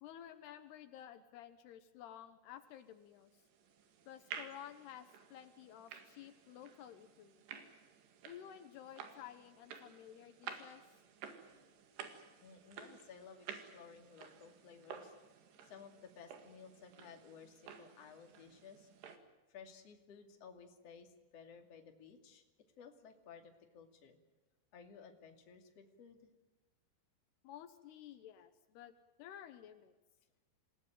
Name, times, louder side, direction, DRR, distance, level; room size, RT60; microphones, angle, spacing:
voice 1, 0.0-3.4 4.1-7.4 8.2-10.8 27.4-29.9, left 10 dB, 80° left, 9 dB, 3.0 m, -53 dB
sound 1, 3.2-19.2, right 7 dB, 80° right, 4.0 m, -53 dB
voice 2, 12.4-15.1 15.6-18.9 19.5-22.4 22.8-24.2 24.7-26.3, left 6 dB, 40° left, 4 dB, 3.1 m, -56 dB
27.0 x 18.5 x 9.1 m, 1.1 s
omnidirectional pair, 4.8 m